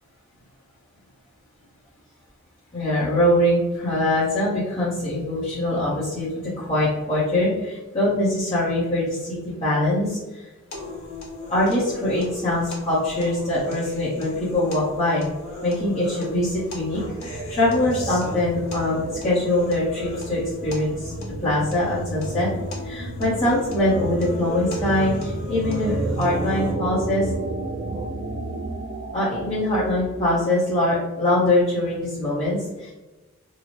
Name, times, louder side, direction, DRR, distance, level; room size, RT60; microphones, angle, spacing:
voice 1, 2.7-10.2 11.5-15.2 15.6-21.1 21.4-22.5 22.8-27.3 29.1-32.9, left 1 dB, 30° left, -11 dB, 0.8 m, -23 dB
sound 1, 10.7-26.7, left 2 dB, 70° left, 1.0 m, -37 dB
sound 2, 16.5-30.6, right 2 dB, 45° right, 0.3 m, -32 dB
3.7 x 2.0 x 3.1 m, 1.1 s
head